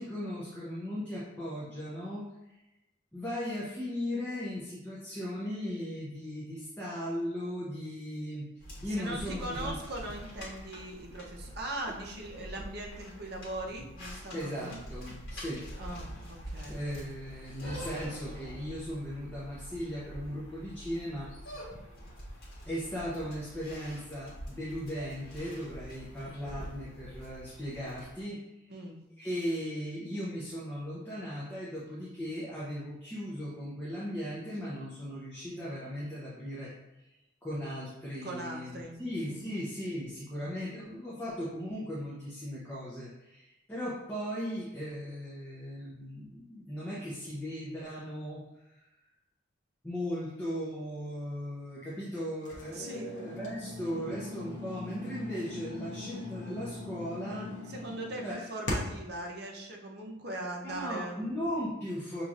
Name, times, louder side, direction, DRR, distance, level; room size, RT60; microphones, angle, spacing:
voice 1, 0.0-2.6 3.1-8.5 8.8-9.8 14.3-15.7 16.7-21.3 21.7-21.9 22.7-28.4 29.2-36.7 37.4-48.4 49.8-57.5 58.2-58.4 60.6-62.2, equal, 10° left, -8 dB, 0.7 m, -37 dB
sound 1, 8.6-28.2, equal, 80° left, 1.4 m, -45 dB
voice 2, 8.7-14.7 15.8-16.8 28.7-29.0 38.2-39.0 39.3-39.5 52.7-53.2 57.7-61.2, right 1 dB, 55° right, 0 dB, 0.7 m, -40 dB
sound 2, 52.4-59.1, left 2 dB, 65° left, 0.8 m, -40 dB
5.6 x 3.0 x 2.5 m, 0.94 s
head